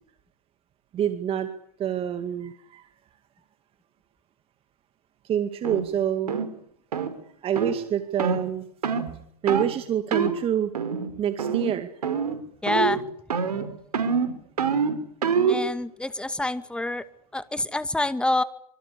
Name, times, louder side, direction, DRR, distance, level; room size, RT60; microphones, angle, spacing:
voice 1, 0.9-1.5 1.8-2.9 5.2-6.3 7.4-8.6 9.4-10.7 11.2-11.9, right 9 dB, 30° right, 9 dB, 2.2 m, -26 dB
sound 1, 5.6-5.8 6.3-6.5 6.9-7.1 7.6-7.8 8.2-8.4 8.8-9.1 9.5-9.7 10.1-10.4 10.7-11.1 11.4-11.8 12.0-12.4 12.7-13.0 13.3-15.6, right 6 dB, 80° right, 5.0 m, -25 dB
voice 2, 12.6-13.0 15.5-17.0 17.3-18.4, left 2 dB, 5° left, 13 dB, 2.0 m, -26 dB
25.5 x 25.5 x 8.4 m, 0.68 s
hypercardioid pair, 110°, 20 cm